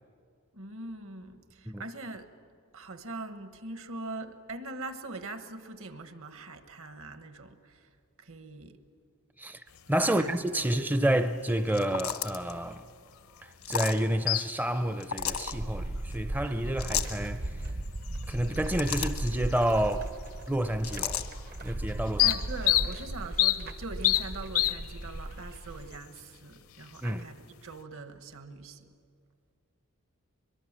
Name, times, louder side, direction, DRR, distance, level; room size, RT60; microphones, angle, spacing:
voice 1, 0.5-2.3 2.7-7.8 8.2-8.8 10.0-10.8 22.2-28.9, right 2 dB, 65° right, 1.3 m, -42 dB
sound 1, 9.7-27.8, left 14 dB, 70° left, 0.7 m, -35 dB
voice 2, 9.9-12.8 13.4-17.6 18.3-20.2 20.5-21.3 21.6-22.2 27.0-27.2, right 1 dB, 10° right, 0.5 m, -29 dB
sound 2, 11.7-12.5 13.6-14.0 15.0-15.5 16.8-17.2 18.4-19.3 20.8-21.3, left 9 dB, 85° left, 1.3 m, -33 dB
sound 3, 15.2-26.0, right 1 dB, 45° right, 0.7 m, -37 dB
23.0 x 22.5 x 7.4 m
head